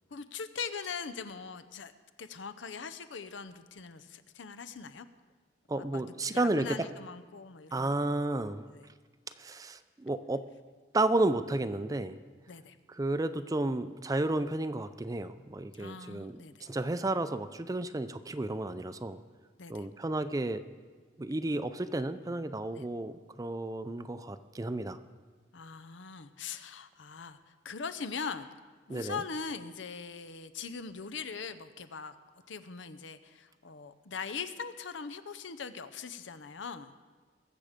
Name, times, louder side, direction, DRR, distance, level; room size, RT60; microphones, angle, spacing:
voice 1, 0.1-1.9 2.2-5.1 5.7-8.1 8.7-8.9 12.5-12.8 15.7-16.7 19.6-19.9 22.7-22.9 25.5-28.5 28.9-32.2 32.5-36.9, left 5 dB, 85° left, 11 dB, 0.7 m, -41 dB
voice 2, 5.7-6.8 7.7-8.6 9.4-10.4 10.9-12.2 13.0-19.2 19.7-20.6 21.2-25.0 28.9-29.2, right 2 dB, 20° right, 12 dB, 0.4 m, -32 dB
21.5 x 7.4 x 5.1 m, 1.5 s
head